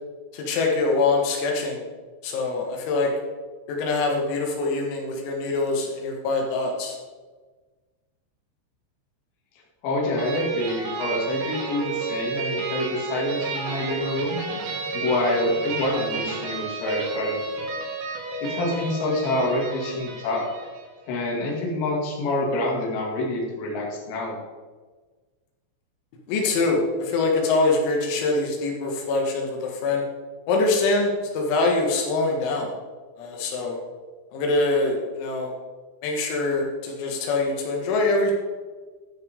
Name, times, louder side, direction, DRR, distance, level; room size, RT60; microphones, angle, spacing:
voice 1, 0.3-1.8 2.2-3.1 3.7-7.0 26.3-30.1 30.5-32.7 33.2-33.8 34.3-35.5 36.0-38.3, left 3 dB, 85° left, 0 dB, 4.3 m, -24 dB
voice 2, 9.8-14.4 14.9-17.4 18.4-20.4 21.1-24.4, left 2 dB, 55° left, -2 dB, 3.7 m, -27 dB
sound 1, 10.2-20.9, right 4 dB, 70° right, 4.6 m, -31 dB
12.0 x 10.5 x 3.7 m, 1.4 s
omnidirectional pair, 6.0 m